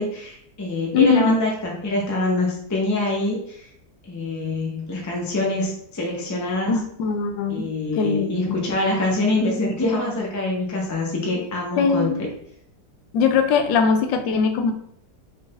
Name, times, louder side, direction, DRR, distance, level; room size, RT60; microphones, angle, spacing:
voice 1, 0.0-3.6 4.1-6.8 7.5-12.3, left 2 dB, 20° left, -2 dB, 0.5 m, -25 dB
voice 2, 0.9-1.4 6.7-7.6 8.0-8.6 11.8-12.1 13.1-14.7, left 5 dB, 85° left, 7 dB, 1.3 m, -20 dB
4.8 x 3.6 x 2.5 m, 0.68 s
omnidirectional pair, 1.9 m